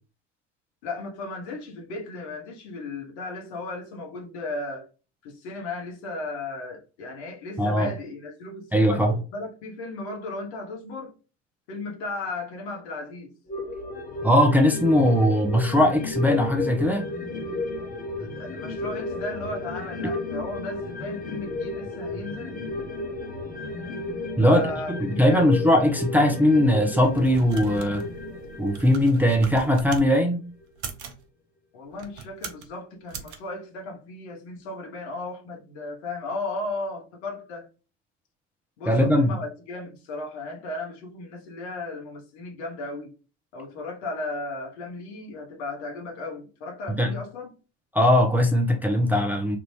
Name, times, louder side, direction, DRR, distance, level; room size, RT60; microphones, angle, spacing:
voice 1, 0.8-4.9 5.2-11.1 11.7-13.3 18.2-22.6 24.4-25.5 31.7-37.7 38.8-43.1 43.5-47.5, left 2 dB, 60° left, 1.1 m, -35 dB
voice 2, 7.6-7.9 8.7-9.2 14.2-17.1 24.4-28.0 28.6-30.4 38.9-39.4 47.0-47.1 47.9-49.6, left 1 dB, 5° right, 0.6 m, -20 dB
sound 1, 13.5-30.3 30.6-30.7, left 2 dB, 25° left, 0.9 m, -33 dB
sound 2, 26.8-30.1 30.7-31.2 31.9-32.7 33.1-33.4, right 6 dB, 60° right, 0.8 m, -40 dB
3.5 x 2.5 x 3.1 m
figure-of-eight pair, 70°, 37 cm